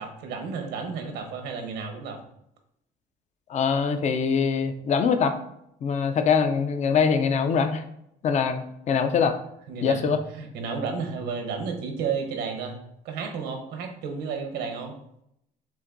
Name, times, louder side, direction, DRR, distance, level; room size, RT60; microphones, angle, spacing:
voice 1, 0.0-2.2 9.7-10.0 10.3-12.8 13.0-14.9, right 5 dB, 85° right, 4 dB, 1.0 m, -32 dB
voice 2, 3.5-5.4 5.8-7.8 8.2-9.4 9.8-10.2, left 6 dB, 45° left, 8 dB, 0.5 m, -23 dB
7.2 x 2.6 x 2.6 m, 0.76 s
cardioid pair, 110°, 17 cm